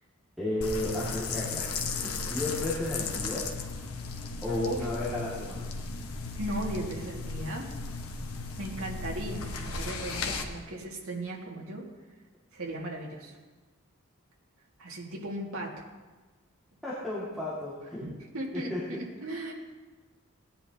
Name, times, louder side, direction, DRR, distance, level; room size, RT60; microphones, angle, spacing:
voice 1, 0.4-3.5 4.4-5.7 16.8-18.0 18.7-18.8 19.3-19.4, left 1 dB, ahead, -8 dB, 2.0 m, -33 dB
sound 1, 0.6-10.4, left 4 dB, 85° left, 1.1 m, -35 dB
voice 2, 6.4-7.7 8.6-11.9 12.5-13.4 14.8-15.9 18.0-19.5, right 1 dB, 75° right, -2 dB, 2.0 m, -37 dB
17.5 x 10.0 x 2.8 m, 1.3 s
head